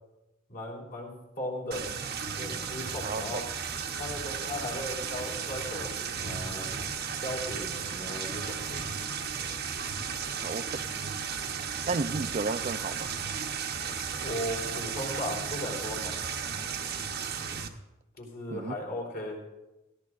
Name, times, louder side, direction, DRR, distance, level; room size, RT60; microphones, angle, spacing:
voice 1, 0.5-1.9 2.3-3.5 4.0-6.7 7.2-8.8 14.2-16.2 18.2-19.4, left 1 dB, 50° left, -3 dB, 3.7 m, -37 dB
sound 1, 1.7-17.7, right 6 dB, 50° right, 0.9 m, -34 dB
voice 2, 10.4-10.8 11.9-13.1 18.5-18.8, right 3 dB, 35° right, 13 dB, 0.4 m, -32 dB
17.0 x 15.0 x 2.5 m, 1.0 s
head